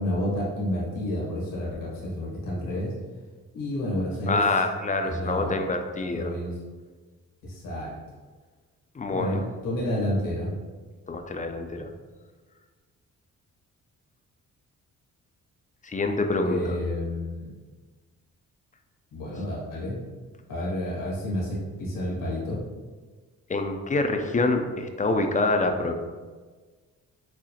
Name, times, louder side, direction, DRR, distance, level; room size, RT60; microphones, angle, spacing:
voice 1, 0.0-2.9 3.5-4.4 5.0-5.5 6.0-6.6 7.4-7.9 9.1-10.5 16.4-17.5 19.1-19.9 20.5-22.6, left 1 dB, 85° left, -4 dB, 1.4 m, -30 dB
voice 2, 4.3-6.3 9.0-9.4 11.1-11.9 15.8-16.7 23.5-25.9, left 2 dB, 25° left, 5 dB, 0.4 m, -26 dB
6.2 x 2.1 x 2.8 m, 1.4 s
cardioid pair, 70°, 32 cm